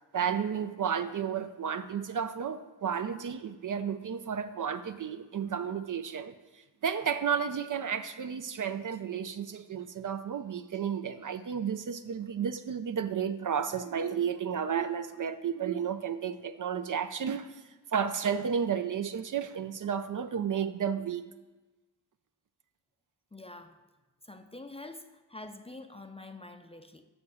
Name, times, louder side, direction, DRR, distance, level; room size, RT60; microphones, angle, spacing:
voice 1, 0.1-6.3 6.8-17.5 17.9-21.3, right 7 dB, 50° right, 0.5 m, -32 dB
voice 2, 23.3-23.8 24.2-27.0, left 2 dB, 15° left, 0.5 m, -46 dB
6.9 x 5.2 x 6.9 m
cardioid pair, 80°, 42 cm